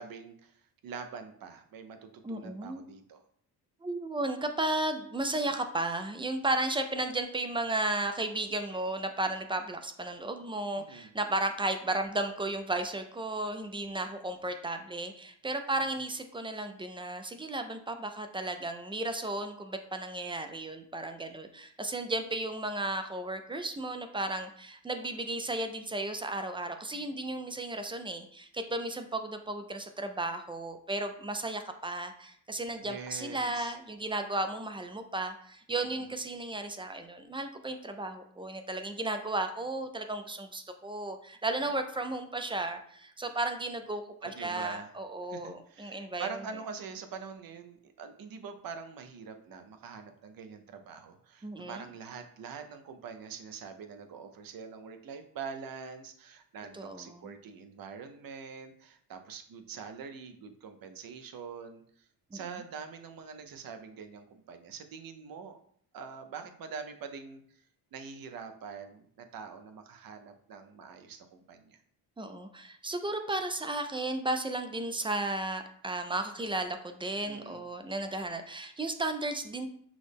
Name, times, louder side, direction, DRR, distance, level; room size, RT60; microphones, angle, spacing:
voice 1, 0.0-3.2 10.8-11.1 15.7-15.9 32.8-33.8 35.8-36.1 44.2-44.9 45.3-61.8 62.3-65.6 65.9-67.6 67.9-71.8 77.2-77.6, right 6 dB, 55° right, 7 dB, 0.7 m, -44 dB
voice 2, 2.2-2.8 3.8-46.3 51.4-51.9 56.7-57.3 62.3-62.6 72.2-79.7, right 2 dB, 15° right, 7 dB, 0.3 m, -34 dB
6.1 x 2.1 x 3.4 m, 0.62 s
cardioid pair, 95°, 42 cm